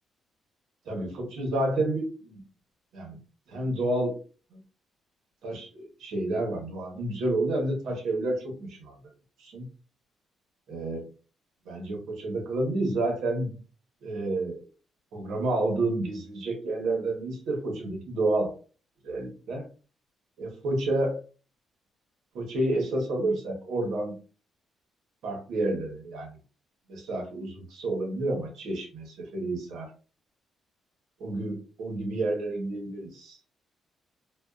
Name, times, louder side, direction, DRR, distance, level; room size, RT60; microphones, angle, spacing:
voice 1, 0.9-2.4 2.9-3.2 3.5-4.2 4.5-4.6 5.4-8.9 9.4-9.7 10.7-11.0 11.6-13.5 14.0-14.6 15.1-18.5 19.0-19.7 20.4-21.2 22.3-24.2 25.2-26.4 26.9-29.9 31.2-33.4, right 2 dB, 80° right, 1 dB, 1.0 m, -30 dB
2.4 x 2.3 x 2.3 m, 0.36 s
cardioid pair, 90°, 0 cm